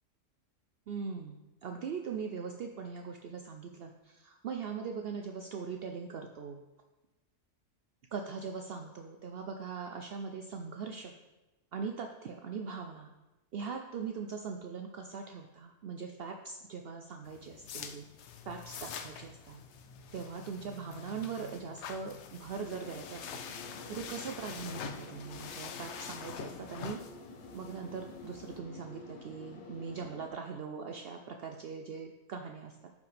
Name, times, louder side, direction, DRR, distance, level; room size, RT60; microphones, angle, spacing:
voice 1, 0.9-6.6 8.1-11.2 11.7-13.1 13.5-18.1 18.5-19.6 20.1-23.4 23.9-27.0 27.5-32.9, right 5 dB, 75° right, 4 dB, 0.5 m, -41 dB
sound 1, 17.2-28.6, left 7 dB, 60° left, 0.8 m, -46 dB
sound 2, 22.6-30.3, left 3 dB, 80° left, 1.6 m, -50 dB
12.5 x 5.2 x 3.4 m, 1.1 s
omnidirectional pair, 1.6 m